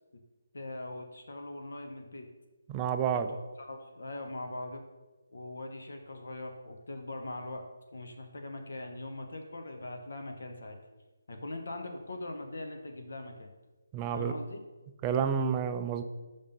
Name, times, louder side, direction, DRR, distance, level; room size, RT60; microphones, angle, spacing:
voice 1, 0.5-2.3 3.1-4.8 5.3-7.6 7.9-10.8 11.3-13.5 14.1-14.6, left 2 dB, 70° left, 4 dB, 0.8 m, -41 dB
voice 2, 2.7-3.4 13.9-14.3 15.0-16.0, right 7 dB, 20° right, 8 dB, 0.4 m, -29 dB
5.4 x 3.6 x 5.2 m, 1.2 s
figure-of-eight pair, 155°, 0 cm